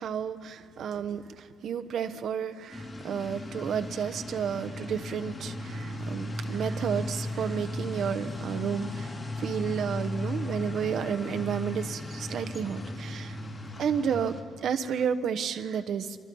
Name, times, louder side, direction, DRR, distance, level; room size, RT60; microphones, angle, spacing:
voice 1, 0.0-13.4 13.8-16.2, right 7 dB, 65° right, 9 dB, 1.0 m, -31 dB
sound 1, 2.7-14.4, left 1 dB, 35° left, 3.9 m, -36 dB
25.5 x 24.0 x 5.5 m, 2.2 s
cardioid pair, 90°, 0 cm